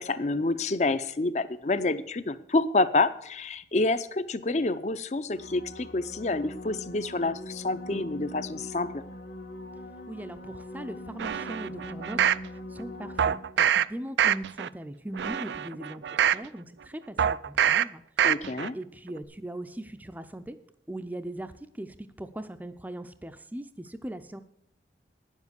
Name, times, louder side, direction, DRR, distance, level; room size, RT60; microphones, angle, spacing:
voice 1, 0.0-9.0 18.2-18.7, left 2 dB, 40° left, 14 dB, 0.6 m, -28 dB
sound 1, 5.3-13.9 19.2-19.3, left 1 dB, 80° left, 1.9 m, -42 dB
voice 2, 10.1-18.0 18.7-20.6 20.9-24.4, right 1 dB, 10° right, 9 dB, 0.5 m, -40 dB
sound 2, 11.2-12.5 13.2-13.8 14.2-14.7 15.1-16.5 17.2-17.8 18.2-18.7 19.1-19.2, right 9 dB, 75° right, 0.4 m, -25 dB
10.0 x 7.3 x 8.0 m, 0.70 s
head